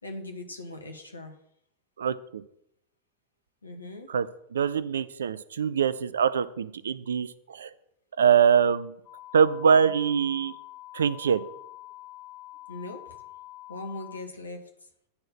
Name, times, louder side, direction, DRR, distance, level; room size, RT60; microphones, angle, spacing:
voice 1, 0.0-1.4 3.6-4.1 9.8-9.9 12.7-13.1 13.7-14.9, left 2 dB, 80° left, 4 dB, 1.5 m, -40 dB
voice 2, 2.0-2.4 4.1-4.3 4.5-7.7 8.2-8.9 9.3-10.5 10.9-11.4, right 7 dB, 65° right, 16 dB, 0.4 m, -23 dB
sound 1, 9.0-14.2, left 17 dB, 55° left, 3.1 m, -46 dB
9.6 x 4.4 x 6.0 m, 0.73 s
figure-of-eight pair, 90°, 0 cm